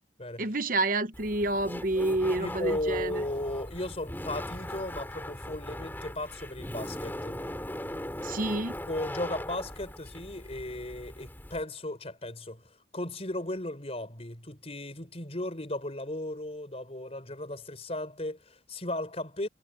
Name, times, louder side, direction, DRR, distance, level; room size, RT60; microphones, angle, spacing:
voice 1, 0.4-3.2 8.2-8.8, right 2 dB, 50° right, 1.0 m, -29 dB
Laughter, 1.1-11.6, left 1 dB, 10° left, 3.0 m, -39 dB
voice 2, 2.4-7.4 8.9-12.6 12.9-19.5, left 1 dB, 35° left, 4.7 m, -36 dB
head